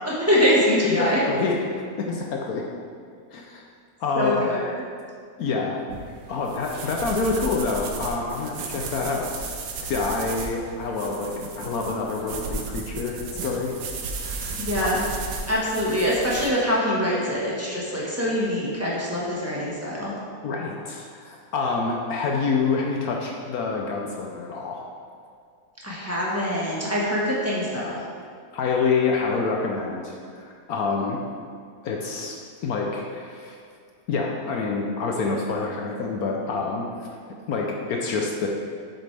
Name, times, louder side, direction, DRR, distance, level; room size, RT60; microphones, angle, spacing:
voice 1, 0.0-1.2 4.1-4.7 14.6-15.0 15.5-20.1 25.8-28.0, equal, 10° right, -6 dB, 1.4 m, -24 dB
voice 2, 0.8-1.6 2.0-2.6 3.3-3.6 4.0-4.3 5.4-5.8 6.3-9.5 9.8-13.7 14.2-14.9 20.4-24.9 28.5-31.2 31.8-32.4 32.6-33.6 34.1-37.1 37.5-38.5, left 4 dB, 70° left, 0 dB, 1.1 m, -27 dB
sound 1, 5.9-16.5, right 4 dB, 80° right, 1.3 m, -34 dB
7.9 x 6.6 x 3.4 m, 2.1 s
omnidirectional pair, 1.7 m